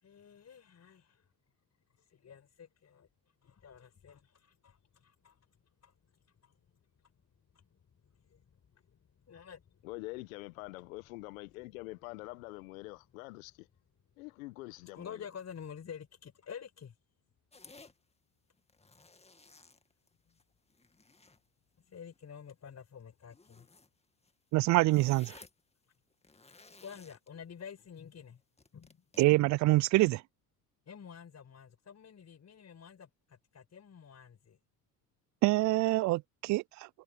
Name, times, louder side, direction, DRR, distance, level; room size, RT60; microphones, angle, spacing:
voice 1, 0.0-1.2 2.1-3.1 3.4-6.8 7.5-9.9 14.9-16.9 20.3-20.4 21.8-23.7 26.8-28.4 28.7-29.0 30.9-34.6, left 7 dB, 40° left, 5.6 m, -50 dB
voice 2, 9.8-13.7 14.2-15.3, left 23 dB, 80° left, 1.0 m, -45 dB
sound 1, 17.5-17.9 18.6-20.4 20.7-21.4 21.9-22.2 23.3-23.9 24.2-24.3 24.6-25.6 26.1-27.3 28.6-29.3, left 3 dB, 15° left, 2.1 m, -57 dB
voice 3, 24.5-25.4 29.2-30.2 35.4-36.9, right 19 dB, 45° right, 0.4 m, -26 dB
hypercardioid pair, 70°, 41 cm